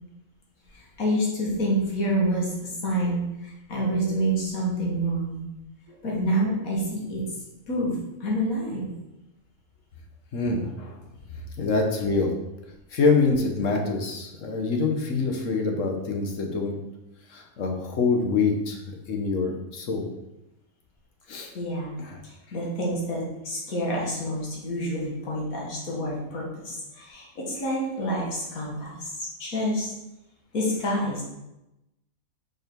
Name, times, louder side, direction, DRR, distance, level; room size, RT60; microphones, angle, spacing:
voice 1, 1.0-5.4 6.0-7.2 7.7-8.0 8.2-8.9 21.6-22.0 22.2-29.9 30.5-31.2, equal, 85° left, -3 dB, 1.9 m, -28 dB
voice 2, 10.3-11.0 11.6-12.3 12.9-16.8 17.3-20.0 21.3-21.5 22.0-22.2, left 4 dB, 70° left, 2 dB, 1.3 m, -25 dB
5.3 x 4.8 x 4.5 m, 0.93 s
omnidirectional pair, 1.4 m